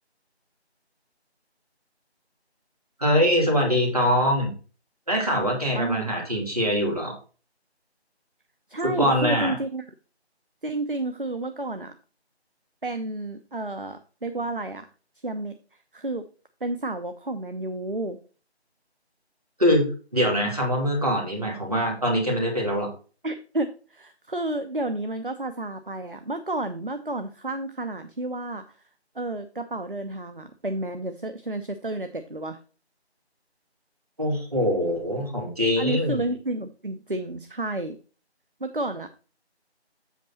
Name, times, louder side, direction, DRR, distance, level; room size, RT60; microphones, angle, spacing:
voice 1, 3.0-4.5 5.1-7.2 8.8-9.6 19.6-19.9 20.1-22.9 34.2-36.2, equal, 35° right, -1 dB, 3.0 m, -23 dB
voice 2, 5.7-6.0 8.7-9.8 10.6-11.9 12.8-14.9 15.2-15.5 15.9-16.2 16.6-18.2 23.2-28.8 29.1-32.6 35.8-38.0 38.6-39.1, right 2 dB, 50° right, 8 dB, 0.8 m, -31 dB
8.3 x 6.1 x 4.2 m, 0.36 s
figure-of-eight pair, 175°, 33 cm